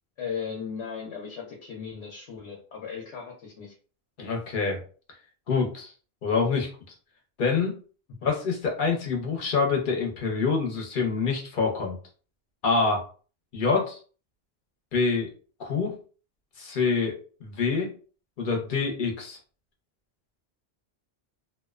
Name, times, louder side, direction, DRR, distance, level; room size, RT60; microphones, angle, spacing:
voice 1, 0.2-3.7, left 6 dB, 85° left, -1 dB, 0.9 m, -37 dB
voice 2, 4.2-4.8 5.5-5.9 6.2-6.7 7.4-7.8 8.2-12.0 12.6-13.0 13.5-14.0 14.9-15.3 15.6-16.0 16.6-17.9 18.4-19.4, left 4 dB, 55° left, 1 dB, 0.8 m, -26 dB
2.5 x 2.1 x 2.3 m, 0.39 s
omnidirectional pair, 1.1 m